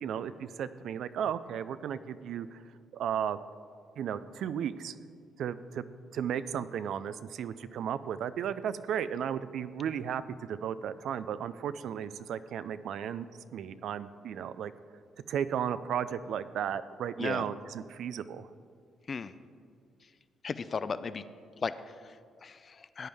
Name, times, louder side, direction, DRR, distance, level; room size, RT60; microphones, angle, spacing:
voice 1, 0.0-2.6 2.9-3.4 4.0-5.0 5.4-5.9 6.1-13.3 13.5-14.7 15.3-18.5, right 8 dB, 75° right, 14 dB, 0.4 m, -34 dB
voice 2, 20.4-21.2 21.6-23.1, left 5 dB, 40° left, 13 dB, 0.5 m, -36 dB
14.5 x 9.4 x 3.5 m, 2.2 s
cardioid pair, 90°, 0 cm